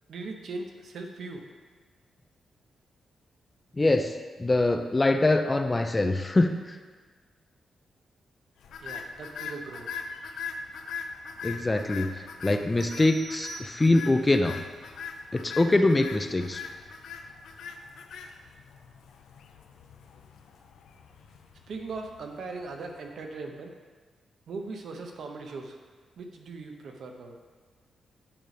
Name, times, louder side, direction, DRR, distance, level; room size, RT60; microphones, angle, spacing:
voice 1, 0.1-1.4 8.8-9.9 21.7-23.7 24.5-25.8 26.2-27.4, right 3 dB, 65° right, 3 dB, 0.8 m, -39 dB
voice 2, 3.7-6.8 11.4-14.6 15.3-16.6, left 2 dB, 20° left, 7 dB, 0.4 m, -24 dB
sound 1, 8.6-23.0, left 5 dB, 90° left, 0.4 m, -41 dB
sound 2, 12.8-14.3, right 4 dB, 50° right, 0.4 m, -44 dB
8.8 x 3.3 x 5.1 m, 1.5 s
cardioid pair, 120°, 0 cm